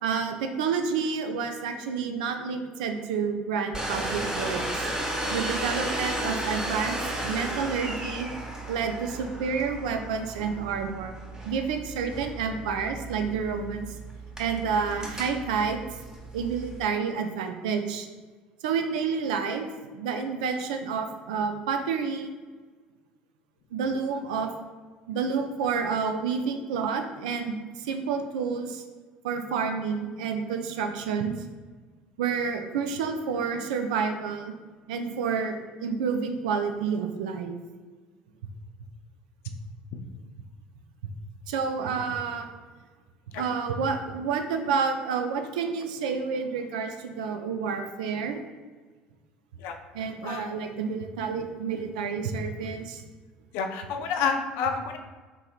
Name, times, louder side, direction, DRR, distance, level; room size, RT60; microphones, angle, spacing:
voice 1, 0.0-4.9 5.3-8.3 8.7-11.1 11.5-13.9 14.4-15.8 16.3-18.1 18.6-19.7 19.9-22.3 23.7-24.5 25.1-28.8 29.2-31.3 32.2-34.5 34.9-35.6 35.8-37.5 41.5-42.4 43.4-48.4 49.9-53.0, right 5 dB, 75° right, 6 dB, 0.4 m, -29 dB
Domestic sounds home sounds, 3.7-16.8, right 1 dB, 15° right, 0.9 m, -34 dB
voice 2, 53.5-55.0, left 5 dB, 65° left, 5 dB, 0.4 m, -29 dB
3.9 x 2.9 x 2.4 m, 1.4 s
hypercardioid pair, 65°, 4 cm